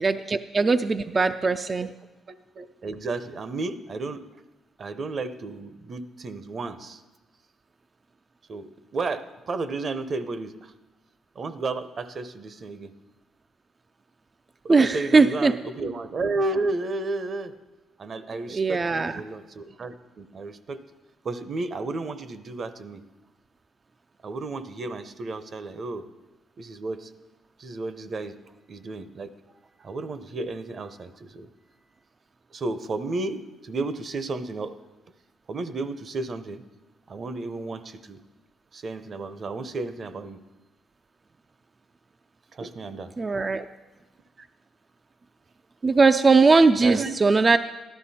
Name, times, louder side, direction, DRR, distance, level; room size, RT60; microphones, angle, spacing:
voice 1, 0.0-1.9 14.7-15.5 18.5-19.2 43.2-43.7 45.8-47.6, right 4 dB, 30° right, 8 dB, 0.4 m, -20 dB
voice 2, 2.3-4.2 4.8-7.0 8.5-10.7 11.3-12.9 14.6-17.5 18.0-20.8 21.2-23.0 24.2-26.0 26.6-27.1 27.6-28.4 28.7-29.3 29.8-31.5 32.5-34.8 35.5-36.6 37.1-38.2 38.7-40.4 42.5-43.1 44.4-44.5 46.8-47.1, right 3 dB, 45° right, 12 dB, 0.7 m, -32 dB
13.5 x 11.5 x 4.2 m, 1.1 s
cardioid pair, 90°, 0 cm